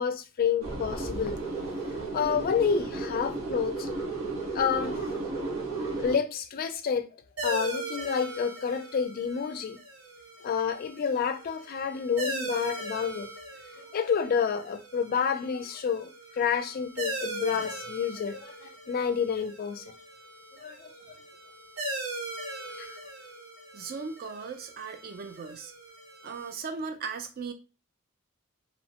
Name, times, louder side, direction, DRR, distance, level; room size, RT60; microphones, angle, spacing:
voice 1, 0.0-1.4 2.1-3.9 4.5-5.1 6.0-7.1 7.4-9.8 10.4-13.3 13.8-19.9 20.6-21.2 22.8-23.0, left 6 dB, 40° left, 0.3 m, -29 dB
sound 1, 0.6-6.2, right 3 dB, 85° right, 1.5 m, -33 dB
sound 2, 7.4-26.5, right 1 dB, 70° right, 0.8 m, -40 dB
voice 2, 23.7-25.7 26.2-27.5, right 5 dB, 45° right, 0.4 m, -37 dB
2.9 x 2.0 x 2.8 m
head